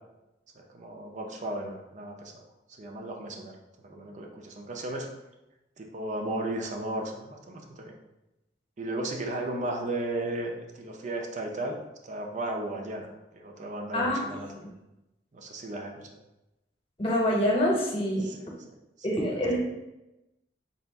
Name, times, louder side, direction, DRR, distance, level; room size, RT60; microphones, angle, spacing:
voice 1, 0.6-2.4 2.8-3.6 3.8-5.1 5.8-7.9 8.8-11.8 12.0-14.7 15.3-16.1 18.2-18.5 19.0-19.2, right 1 dB, 40° right, 3 dB, 0.5 m, -35 dB
voice 2, 17.0-18.3 19.0-19.6, equal, 30° left, -2 dB, 0.9 m, -25 dB
4.0 x 2.5 x 3.4 m, 0.94 s
head